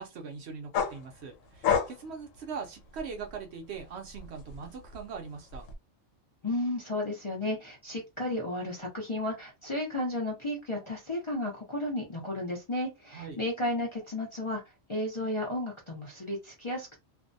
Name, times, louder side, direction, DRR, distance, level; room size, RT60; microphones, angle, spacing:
voice 1, 0.0-5.7 13.1-13.4, right 5 dB, 65° right, 0.8 m, -41 dB
sound 1, 0.7-3.4 3.8-5.7, left 7 dB, 75° left, 1.0 m, -32 dB
voice 2, 6.4-14.6 14.9-16.9, left 1 dB, 35° left, 0.5 m, -33 dB
2.6 x 2.1 x 2.5 m
omnidirectional pair, 1.4 m